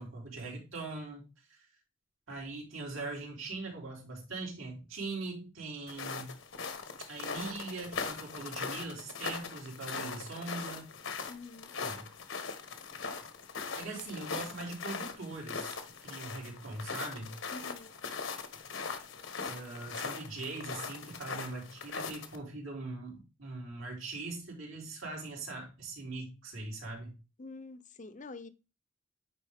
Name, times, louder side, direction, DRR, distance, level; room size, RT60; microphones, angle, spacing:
voice 1, 0.0-1.6 2.3-6.4 7.1-10.9 11.8-12.1 13.7-15.8 16.0-17.4 19.5-27.2, right 3 dB, 85° right, 3.9 m, -41 dB
sound 1, 5.9-22.4, left 5 dB, 75° left, 1.3 m, -40 dB
voice 2, 11.3-11.7 17.5-17.9 27.4-28.5, left 3 dB, 40° left, 0.7 m, -46 dB
10.0 x 3.9 x 3.6 m
head